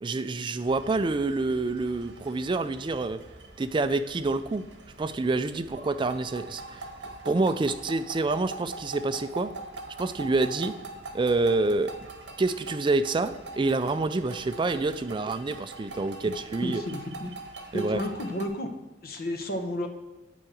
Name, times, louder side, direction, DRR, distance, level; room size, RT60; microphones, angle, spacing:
voice 1, 0.0-3.2 3.6-4.6 5.0-6.9 7.2-9.5 10.0-10.7 11.1-12.0 12.4-16.8 17.7-18.0, right 3 dB, 25° right, 11 dB, 0.4 m, -27 dB
sound 1, 0.7-18.5, right 2 dB, 70° right, 1.3 m, -43 dB
voice 2, 16.6-17.4 17.7-18.7 19.0-19.9, left 1 dB, 55° left, 6 dB, 1.1 m, -32 dB
9.2 x 4.8 x 7.6 m, 1.1 s
head